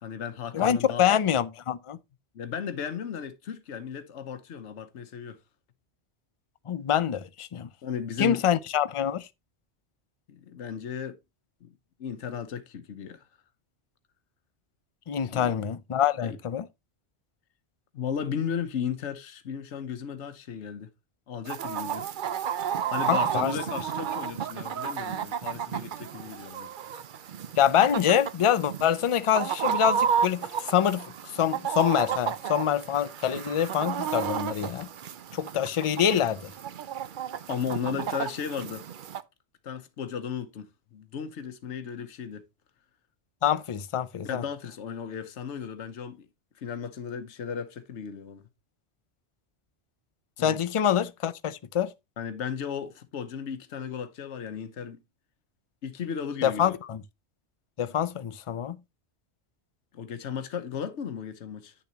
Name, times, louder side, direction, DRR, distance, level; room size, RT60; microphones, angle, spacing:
voice 1, 0.0-1.0 2.3-5.4 7.8-8.4 10.3-11.2 11.6-11.7 12.0-13.3 15.3-15.5 16.2-16.4 17.9-20.9 21.3-22.0 22.7-26.7 37.5-38.8 39.6-42.4 44.2-46.3 46.6-48.4 50.4-50.6 52.2-55.0 55.8-56.8 59.9-61.7, left 7 dB, 80° left, 1.2 m, -35 dB
voice 2, 0.5-2.0 6.7-7.7 8.2-9.3 15.1-16.7 23.1-23.6 27.6-31.1 31.3-34.9 35.3-36.5 43.4-44.4 50.4-51.9 56.4-57.0 57.8-58.8, left 9 dB, 45° left, 0.4 m, -25 dB
Chicken rooster, 21.5-39.2, right 8 dB, 55° right, 0.7 m, -32 dB
9.9 x 7.0 x 2.9 m
omnidirectional pair, 1.2 m